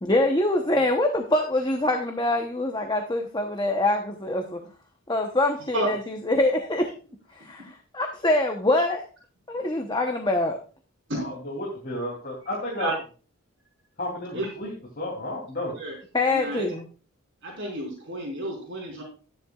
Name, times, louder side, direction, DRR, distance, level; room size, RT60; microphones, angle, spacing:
voice 1, 0.0-4.6 5.1-6.0 6.3-6.9 7.4-9.0 9.5-10.6 16.1-16.8, left 2 dB, 20° left, 4 dB, 0.9 m, -24 dB
voice 2, 11.1-12.9 14.0-15.7, left 1 dB, 40° left, -3 dB, 3.0 m, -32 dB
voice 3, 16.3-16.8 17.4-19.0, right 1 dB, 55° right, -2 dB, 4.1 m, -31 dB
13.0 x 10.5 x 2.4 m, 0.36 s
head